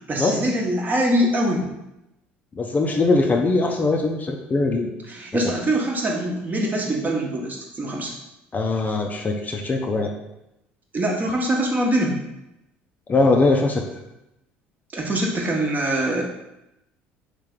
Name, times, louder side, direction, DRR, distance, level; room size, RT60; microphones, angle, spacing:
voice 1, 0.1-1.7 5.1-8.1 10.9-12.2 14.9-16.2, right 1 dB, 30° right, -1 dB, 1.0 m, -23 dB
voice 2, 2.6-4.9 8.5-10.1 13.1-13.8, left 3 dB, 30° left, 2 dB, 0.6 m, -21 dB
3.3 x 3.2 x 3.7 m, 0.90 s
hypercardioid pair, 65°, 6 cm